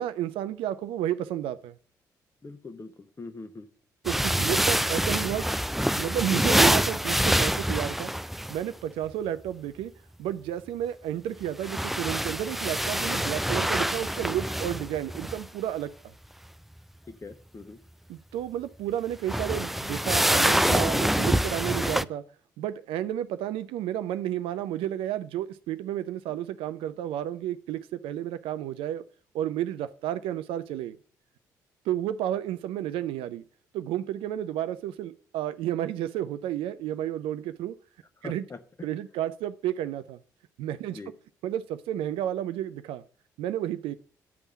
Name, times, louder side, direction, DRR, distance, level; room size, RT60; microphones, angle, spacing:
voice 1, 0.0-1.8 4.0-5.6 6.0-8.1 8.5-9.9 10.2-16.1 18.1-22.2 22.6-29.0 29.3-31.0 31.9-33.4 33.7-37.7 38.2-38.4 38.8-40.2 40.6-41.0 41.4-43.0 43.4-44.0, right 11 dB, 70° right, 0.5 m, -31 dB
voice 2, 2.4-3.7 17.1-17.8 38.2-38.6 40.9-41.1, left 3 dB, 30° left, 1.2 m, -42 dB
sound 1, 4.0-8.6 11.4-15.5 19.1-22.0, equal, ahead, 0.3 m, -25 dB
9.6 x 3.6 x 6.8 m
hypercardioid pair, 45°, 10 cm